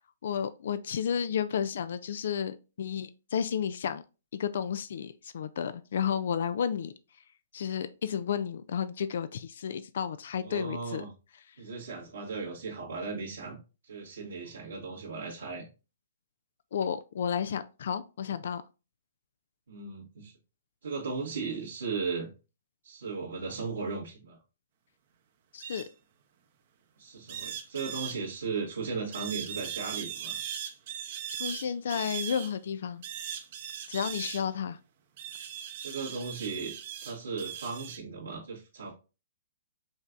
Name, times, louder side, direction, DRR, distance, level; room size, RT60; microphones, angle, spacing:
voice 1, 0.2-4.0 4.3-6.9 7.5-11.0 16.7-18.6 25.5-25.8 31.4-33.0 33.9-34.8, left 8 dB, 65° left, 0.4 m, -32 dB
voice 2, 10.4-11.1 11.6-13.6 13.8-15.7 19.7-20.3 20.8-22.3 22.8-24.4 27.0-30.4 35.8-36.7 37.0-38.9, right 4 dB, 80° right, 1.5 m, -36 dB
sound 1, 25.6-25.9 27.3-28.2 29.1-32.5 33.0-34.5 35.2-38.0, right 9 dB, 50° right, 0.8 m, -39 dB
5.2 x 3.3 x 2.5 m
hypercardioid pair, 130°, 0 cm